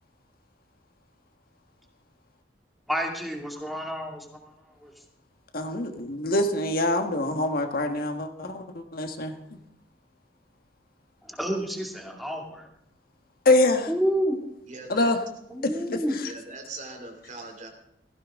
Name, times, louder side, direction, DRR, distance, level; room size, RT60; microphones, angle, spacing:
voice 1, 2.9-4.3 4.8-4.9 11.3-12.7 13.9-14.4 15.5-16.2, equal, ahead, 1 dB, 2.4 m, -29 dB
voice 2, 5.5-9.4 13.4-13.9 14.9-15.2 15.9-16.3, left 2 dB, 55° left, 5 dB, 1.5 m, -25 dB
voice 3, 14.7-15.1 16.2-17.7, right 3 dB, 45° right, 4 dB, 2.8 m, -41 dB
17.0 x 15.5 x 3.7 m, 0.77 s
head